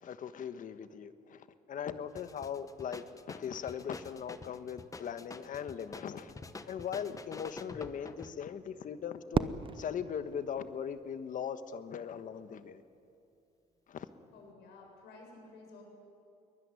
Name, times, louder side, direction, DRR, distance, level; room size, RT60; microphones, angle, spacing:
voice 1, 0.0-6.3 6.7-12.8 13.9-14.1, left 8 dB, 50° left, 11 dB, 1.3 m, -40 dB
sound 1, 2.1-8.4, left 3 dB, 20° left, 1.1 m, -48 dB
Fireworks, 9.3-11.5, right 6 dB, 30° right, 0.8 m, -36 dB
voice 2, 14.3-15.8, left 3 dB, 80° left, 1 dB, 7.2 m, -53 dB
22.5 x 20.0 x 9.8 m, 2.7 s
cardioid pair, 110°, 17 cm